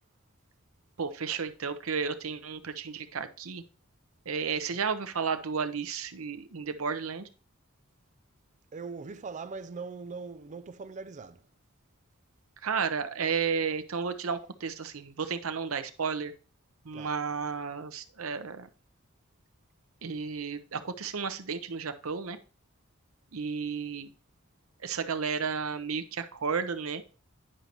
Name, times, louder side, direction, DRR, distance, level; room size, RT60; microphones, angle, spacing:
voice 1, 1.0-3.6 4.3-7.3 12.6-16.3 16.8-18.7 20.0-22.4 23.3-24.1 24.8-27.0, right 5 dB, 90° right, 0.8 m, -32 dB
voice 2, 8.7-11.4 16.9-17.2, right 4 dB, 35° right, 0.4 m, -41 dB
9.9 x 5.3 x 3.0 m
head